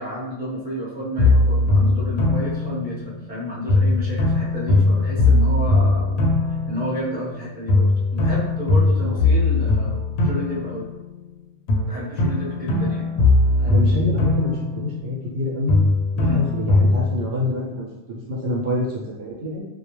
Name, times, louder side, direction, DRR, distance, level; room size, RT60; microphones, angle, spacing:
voice 1, 0.0-6.1 6.7-10.9 11.9-13.1 16.2-16.4, equal, 10° right, -8 dB, 0.7 m, -31 dB
sound 1, 1.2-3.3 3.7-7.4 7.7-11.3 11.7-15.4 15.7-17.3, left 2 dB, 70° left, 0.8 m, -20 dB
voice 2, 13.6-15.8 16.2-19.6, left 1 dB, 65° right, -4 dB, 0.9 m, -27 dB
2.3 x 2.1 x 2.9 m, 0.97 s
omnidirectional pair, 1.3 m